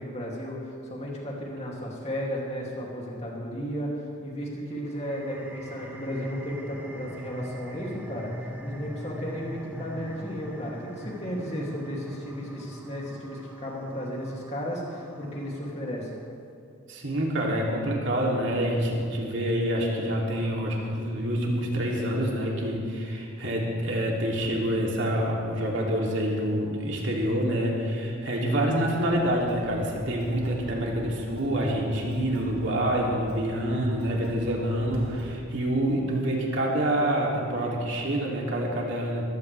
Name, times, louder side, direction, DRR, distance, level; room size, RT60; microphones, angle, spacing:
voice 1, 0.0-16.2, equal, 30° left, -3 dB, 2.7 m, -34 dB
sound 1, 4.8-16.0, equal, 10° right, 1.1 m, -42 dB
voice 2, 16.9-39.3, right 1 dB, 60° right, -3 dB, 2.9 m, -27 dB
sound 2, 28.7-35.4, equal, 85° right, 1.4 m, -45 dB
21.0 x 15.0 x 3.4 m, 2.5 s
head